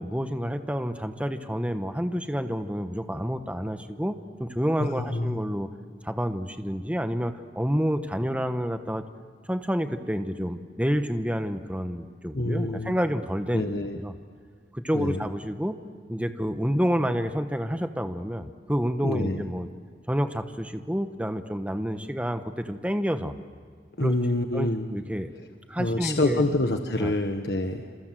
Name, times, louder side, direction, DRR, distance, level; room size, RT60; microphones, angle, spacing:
voice 1, 0.0-5.7 6.0-9.0 9.5-13.7 14.0-14.1 14.7-15.7 16.1-19.7 20.1-23.3 24.0-24.1 24.5-25.3 25.7-26.4 27.0-27.1, equal, 10° right, 8 dB, 1.2 m, -29 dB
voice 2, 4.8-5.4 12.3-13.0 13.5-14.0 14.9-15.2 19.0-19.4 24.0-24.9 25.8-27.8, left 2 dB, 70° left, 5 dB, 1.4 m, -26 dB
28.0 x 27.0 x 7.7 m, 2.1 s
head